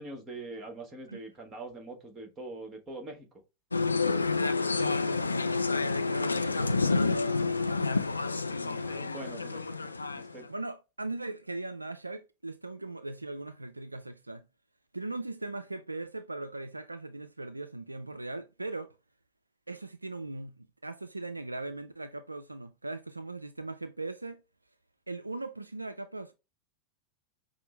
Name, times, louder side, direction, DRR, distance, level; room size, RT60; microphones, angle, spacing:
voice 1, 0.0-3.3 8.5-9.9 10.3-10.4, right 2 dB, 20° right, 1.4 m, -43 dB
sound 1, 3.7-10.4, left 4 dB, 80° left, 0.3 m, -29 dB
voice 2, 4.8-7.8 10.5-14.4 14.9-18.9 19.7-24.4 25.1-26.3, right 2 dB, 85° right, 0.3 m, -39 dB
5.8 x 2.1 x 3.2 m
figure-of-eight pair, 90°, 0 cm